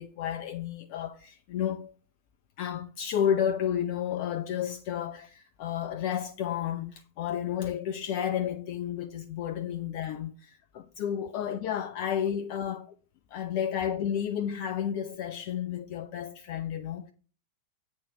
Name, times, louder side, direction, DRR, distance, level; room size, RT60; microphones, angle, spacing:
voice 1, 0.0-1.9 2.6-12.9 13.3-17.1, left 9 dB, 45° left, 0.5 m, -31 dB
8.5 x 4.4 x 5.8 m
figure-of-eight pair, 90°, 0 cm